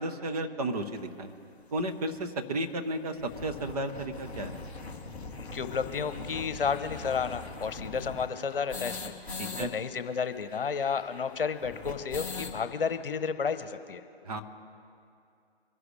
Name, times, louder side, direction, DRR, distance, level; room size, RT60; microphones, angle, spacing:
voice 1, 0.0-1.3 1.7-4.6 9.4-9.7 14.2-14.4, right 1 dB, 35° right, 6 dB, 1.1 m, -33 dB
sound 1, 1.0-1.1 1.8-1.9 2.1-2.2 2.5-2.6 3.0-9.7 9.9-10.0 10.2-12.6, left 3 dB, 5° left, 0.5 m, -41 dB
voice 2, 5.4-9.1 9.5-14.0, left 6 dB, 60° left, 11 dB, 0.9 m, -32 dB
23.5 x 11.0 x 3.3 m, 2.5 s
figure-of-eight pair, 145°, 31 cm